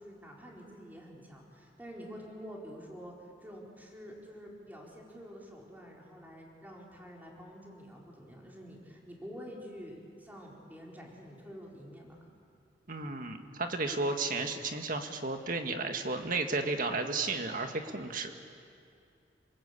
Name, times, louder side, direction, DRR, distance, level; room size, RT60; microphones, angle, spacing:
voice 1, 0.0-12.4, equal, 10° right, -2 dB, 4.3 m, -48 dB
voice 2, 12.9-18.3, right 3 dB, 50° right, 5 dB, 1.9 m, -33 dB
28.5 x 20.5 x 8.5 m, 2.5 s
head